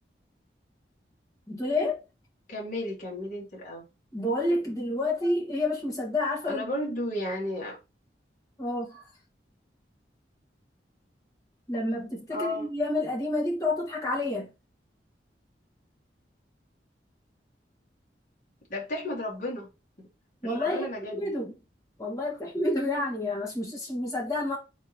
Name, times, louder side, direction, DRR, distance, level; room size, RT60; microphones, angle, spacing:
voice 1, 1.5-2.0 4.1-6.7 8.6-9.1 11.7-14.5 20.4-21.5 22.0-24.6, left 2 dB, 20° left, 1.7 m, -29 dB
voice 2, 2.5-3.8 6.5-7.8 12.3-12.7 18.7-19.7 20.0-20.1 20.4-21.3, left 1 dB, 45° left, 1.9 m, -33 dB
4.2 x 3.9 x 3.0 m
head